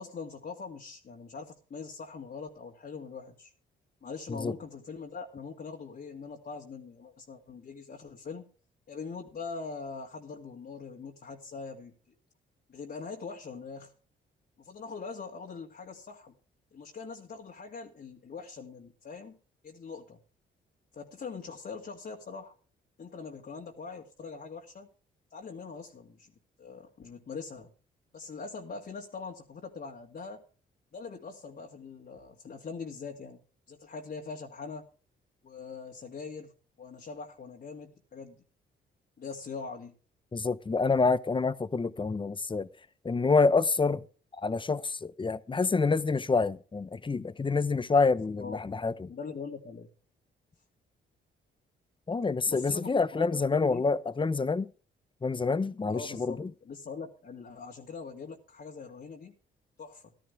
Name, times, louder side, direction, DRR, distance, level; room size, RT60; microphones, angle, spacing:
voice 1, 0.0-3.5 4.0-8.5 8.9-11.9 12.7-13.9 14.6-16.3 16.7-19.4 19.6-20.2 20.9-22.5 23.0-24.9 25.3-26.3 26.6-27.7 28.1-30.4 30.9-33.4 33.7-34.9 35.4-36.5 36.8-38.4 39.2-39.9 48.4-48.6 49.1-49.9 52.5-53.8 55.9-59.3 59.8-60.1, left 5 dB, 50° left, 2.3 m, -42 dB
voice 2, 40.3-42.7 43.0-44.0 44.4-49.1 52.1-54.7 55.2-56.5, left 4 dB, 25° left, 0.9 m, -27 dB
15.0 x 13.0 x 3.4 m
cardioid pair, 80°, 20 cm